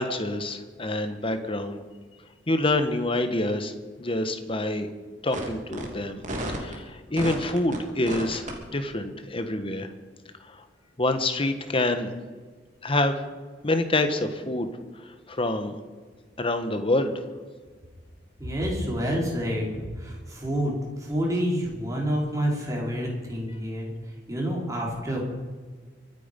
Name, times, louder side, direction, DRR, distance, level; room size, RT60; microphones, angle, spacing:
voice 1, 0.0-1.8 2.5-3.7 4.0-4.9 5.2-6.2 6.6-8.4 8.7-9.9 10.5-10.6 11.0-12.1 12.8-13.2 13.6-14.7 15.3-15.8 16.4-17.1, left 2 dB, 30° left, 8 dB, 1.4 m, -26 dB
sound 1, 5.3-5.5 5.7-5.8 6.2-6.7 7.2-7.8 8.1-8.5, right 1 dB, 45° right, 3.0 m, -32 dB
voice 2, 18.4-23.9 24.3-25.2, equal, 20° right, -2 dB, 4.5 m, -28 dB
24.5 x 9.7 x 5.4 m, 1.4 s
head